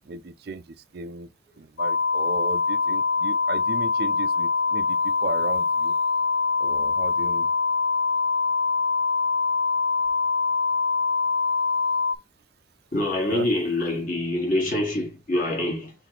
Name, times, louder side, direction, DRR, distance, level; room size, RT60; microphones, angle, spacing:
voice 1, 0.1-0.6 0.9-1.3 1.6-5.9 6.6-7.5 13.3-13.5, right 3 dB, 55° right, 0.4 m, -35 dB
sound 1, 1.8-12.2, left 4 dB, 80° left, 0.6 m, -24 dB
voice 2, 12.9-15.9, left 1 dB, 45° left, 1.9 m, -25 dB
4.3 x 3.1 x 4.0 m
head